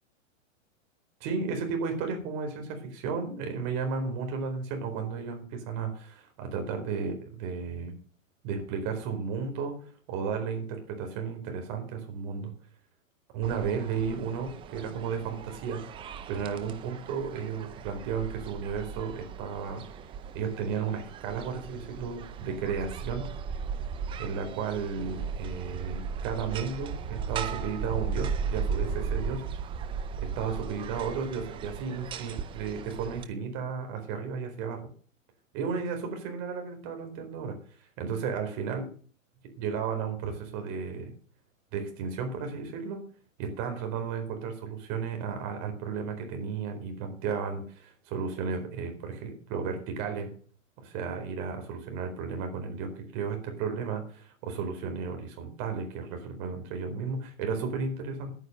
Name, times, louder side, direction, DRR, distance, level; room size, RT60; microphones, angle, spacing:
voice 1, 1.2-8.0 8.4-12.5 13.3-15.8 16.3-20.0 20.3-23.3 24.2-29.4 30.2-34.9 35.5-37.6 38.0-38.9 39.6-41.1 41.7-43.1 43.4-50.3 50.8-58.3, right 5 dB, 40° right, 5 dB, 4.4 m, -34 dB
sound 1, 13.4-33.2, right 6 dB, 15° right, 0.6 m, -37 dB
11.0 x 9.3 x 6.7 m, 0.44 s
hypercardioid pair, 140°, 40 cm